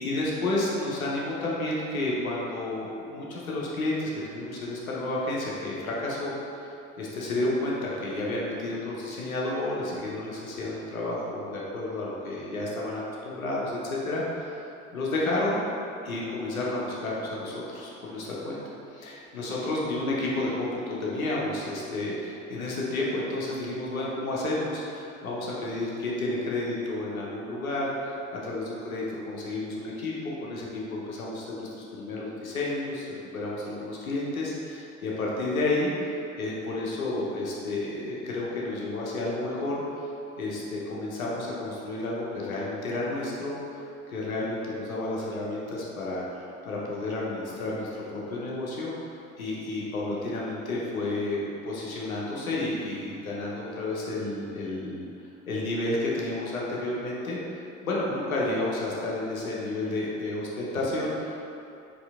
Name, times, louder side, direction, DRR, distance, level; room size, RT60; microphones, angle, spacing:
voice 1, 0.0-14.6 14.9-15.6 16.0-18.6 18.9-33.0 33.3-40.1 40.4-43.8 44.1-49.1 49.4-55.0 55.5-57.4 57.8-61.3, left 2 dB, 90° left, -4 dB, 0.7 m, -31 dB
4.3 x 2.8 x 3.5 m, 2.8 s
hypercardioid pair, 65°, 40 cm